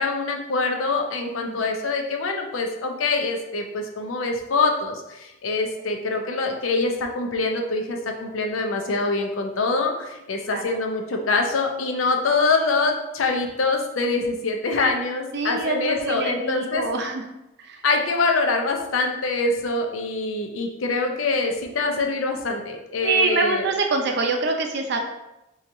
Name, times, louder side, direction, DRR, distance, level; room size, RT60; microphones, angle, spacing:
voice 1, 0.0-16.8 17.8-23.6, left 3 dB, 90° left, 3 dB, 0.6 m, -24 dB
voice 2, 1.3-1.6 10.5-10.6 15.3-17.2 17.6-17.8 23.0-25.0, right 3 dB, 55° right, 3 dB, 0.5 m, -25 dB
4.7 x 2.8 x 2.6 m, 0.93 s
head